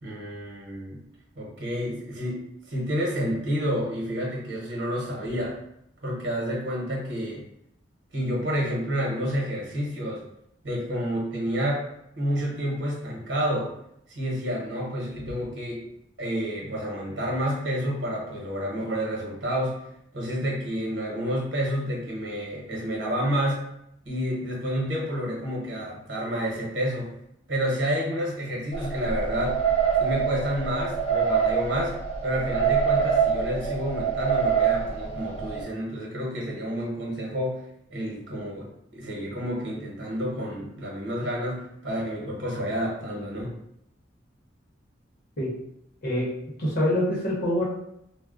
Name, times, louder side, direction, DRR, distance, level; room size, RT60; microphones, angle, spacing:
voice 1, 0.0-1.0 1.3-5.6 6.0-7.4 8.1-10.2 10.6-11.8 12.2-13.7 14.1-15.8 16.2-19.8 20.1-23.6 24.0-27.1 27.5-29.6 30.0-31.9 32.2-37.6 37.9-43.5, equal, 70° right, -3 dB, 1.0 m, -29 dB
sound 1, 28.7-35.6, right 7 dB, 35° left, 0.6 m, -25 dB
voice 2, 46.6-47.7, left 1 dB, 55° left, -5 dB, 0.9 m, -25 dB
2.3 x 2.1 x 3.6 m, 0.77 s
head